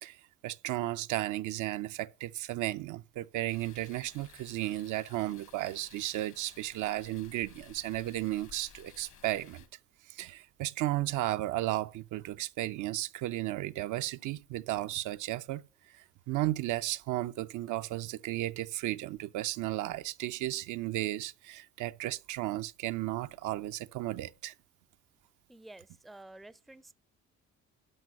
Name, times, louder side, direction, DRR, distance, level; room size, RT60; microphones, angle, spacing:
voice 1, 0.4-9.6 10.1-15.6 16.3-24.5, right 15 dB, 80° right, 0.5 m, -34 dB
sound 1, 3.5-9.7, left 9 dB, 70° left, 1.3 m, -56 dB
voice 2, 25.5-26.9, right 2 dB, ahead, 0.4 m, -51 dB
11.0 x 5.9 x 5.3 m
cardioid pair, 90°, 30 cm